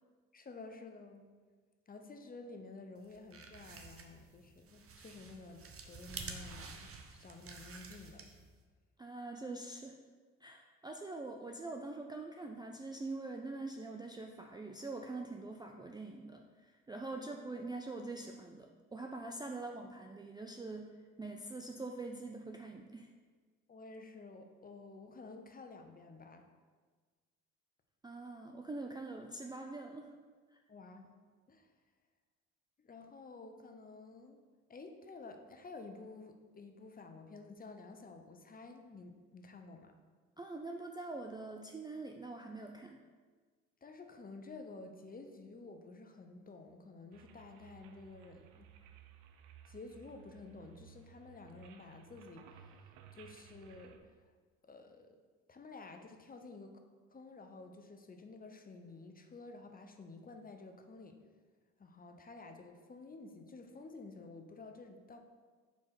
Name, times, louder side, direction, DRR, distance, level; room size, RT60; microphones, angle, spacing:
voice 1, 0.3-1.3 1.9-8.3 17.1-17.3 23.7-26.4 30.7-31.1 31.5-31.7 32.8-34.4 34.7-40.0 43.8-48.7 49.6-54.3 54.6-55.2 55.5-56.8 57.1-61.2 61.8-65.2, left 3 dB, 25° left, 5 dB, 0.8 m, -52 dB
sound 1, 3.0-8.6, right 4 dB, 40° right, 0.9 m, -50 dB
voice 2, 9.0-10.0 10.4-23.1 28.0-30.1 30.5-30.6 40.4-43.0, right 2 dB, 10° right, 2 dB, 0.4 m, -44 dB
sound 2, 47.1-54.0, right 8 dB, 80° right, 0.6 m, -58 dB
4.7 x 4.4 x 5.8 m, 1.5 s
supercardioid pair, 70°, 36 cm